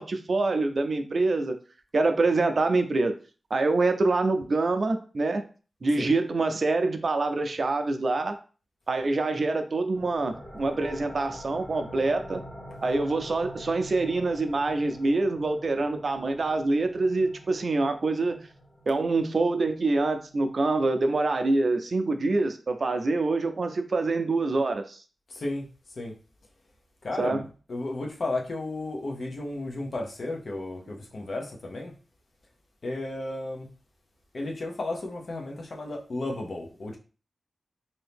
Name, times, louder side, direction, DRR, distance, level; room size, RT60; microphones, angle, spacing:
voice 1, 0.0-1.6 1.9-3.2 3.5-5.4 5.8-8.4 8.9-12.4 12.8-18.4 18.9-25.0 27.1-27.4, right 3 dB, 60° right, 7 dB, 0.4 m, -25 dB
sound 1, 9.9-21.3, equal, 15° left, 1.2 m, -45 dB
voice 2, 25.3-25.7 26.0-26.1 27.0-27.4 27.7-31.9 32.8-33.7 34.3-37.0, left 2 dB, 65° left, 0 dB, 0.8 m, -33 dB
2.8 x 2.7 x 3.4 m, 0.37 s
wide cardioid pair, 75°, 0 cm